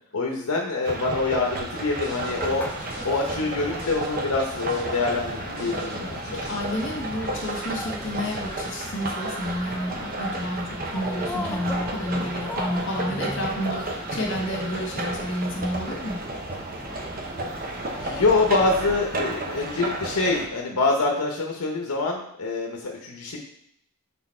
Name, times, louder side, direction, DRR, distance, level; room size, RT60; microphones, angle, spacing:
voice 1, 0.1-2.7 3.0-6.5 18.0-23.4, left 3 dB, 90° left, 0 dB, 0.9 m, -25 dB
sound 1, 0.8-20.5, right 2 dB, 40° right, 0.8 m, -32 dB
sound 2, 1.6-8.7, right 1 dB, 75° right, 2.5 m, -44 dB
sound 3, 2.1-18.8, left 1 dB, 5° left, 0.4 m, -39 dB
voice 2, 6.3-16.2, equal, 55° left, 0 dB, 1.7 m, -30 dB
6.2 x 4.0 x 4.3 m, 0.71 s
head